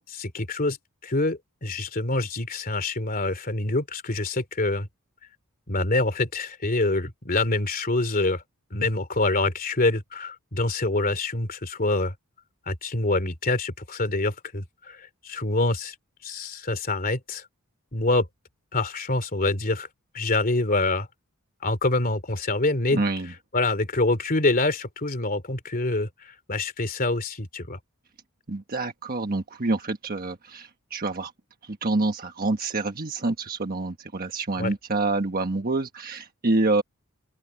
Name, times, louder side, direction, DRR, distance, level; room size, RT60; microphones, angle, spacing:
voice 1, 0.1-0.8 1.0-4.9 5.7-8.4 8.7-12.1 12.7-15.9 16.2-17.4 17.9-18.3 18.7-19.9 20.1-21.1 21.6-23.0 23.5-27.8 34.6-34.7, left 2 dB, 40° left, 2.9 m, -26 dB
voice 2, 22.9-23.3 28.5-31.3 31.6-36.8, right 2 dB, 45° right, 1.3 m, -27 dB
open air
head